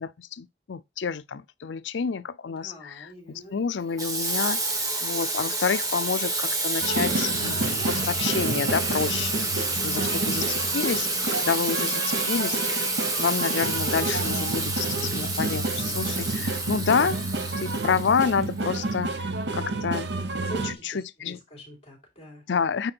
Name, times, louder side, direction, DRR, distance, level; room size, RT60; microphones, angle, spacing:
voice 1, 0.0-11.1 11.4-12.9 13.2-17.2 17.6-20.1 20.6-21.4 22.5-22.9, left 6 dB, 90° left, 0.5 m, -29 dB
voice 2, 2.5-3.6 20.4-22.5, right 1 dB, 35° left, 3.5 m, -44 dB
Water tap faucet / Sink (filling or washing), 4.0-18.7, right 2 dB, 20° right, 1.5 m, -29 dB
Musica de Banda en la calle, 6.8-20.7, right 2 dB, 70° right, 0.8 m, -30 dB
9.0 x 3.7 x 4.4 m
head